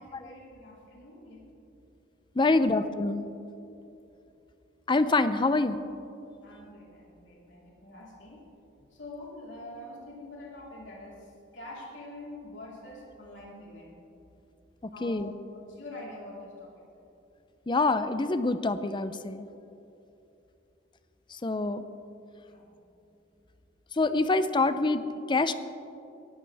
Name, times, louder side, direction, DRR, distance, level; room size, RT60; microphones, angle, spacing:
voice 1, 0.0-1.4 2.4-2.7 6.4-8.4 8.9-11.3 11.5-14.0 14.9-15.2 15.7-16.8 22.5-22.7, left 1 dB, 75° left, -4 dB, 3.9 m, -45 dB
voice 2, 2.4-3.2 4.9-5.8 15.0-15.3 17.7-19.5 21.3-21.8 23.9-25.5, left 3 dB, 25° left, 12 dB, 0.5 m, -26 dB
18.5 x 15.0 x 3.5 m, 2.8 s
head